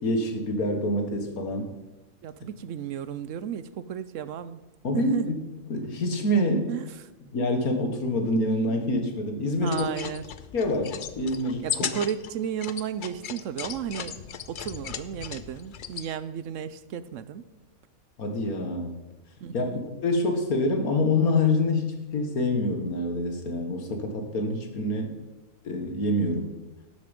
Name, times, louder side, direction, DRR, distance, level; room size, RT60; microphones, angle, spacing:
voice 1, 0.0-1.7 4.8-5.2 5.7-6.7 7.3-9.8 10.5-11.6 18.2-19.0 19.5-19.7 20.0-25.1 25.6-26.5, left 1 dB, 90° left, 5 dB, 2.0 m, -26 dB
voice 2, 2.2-4.6 4.9-5.3 6.7-6.9 9.6-10.2 11.6-14.2 14.5-17.4 19.4-19.8, right 9 dB, 70° right, 14 dB, 0.9 m, -33 dB
sound 1, 9.6-16.1, left 8 dB, 55° left, 0.5 m, -37 dB
12.0 x 8.2 x 5.2 m, 1.1 s
omnidirectional pair, 1.5 m